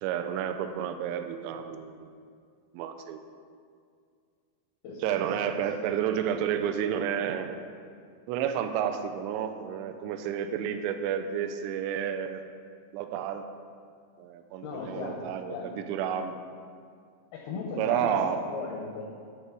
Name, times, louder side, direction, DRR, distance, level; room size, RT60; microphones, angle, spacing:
voice 1, 0.0-2.1 2.7-3.2 5.0-7.6 8.3-12.4 12.9-13.5 14.2-16.4 17.8-18.4, right 9 dB, 85° right, 7 dB, 2.6 m, -30 dB
voice 2, 4.8-5.6 14.6-15.7 17.3-18.2 18.5-19.0, left 4 dB, 80° left, -1 dB, 2.2 m, -37 dB
11.5 x 4.4 x 6.0 m, 2.2 s
omnidirectional pair, 5.6 m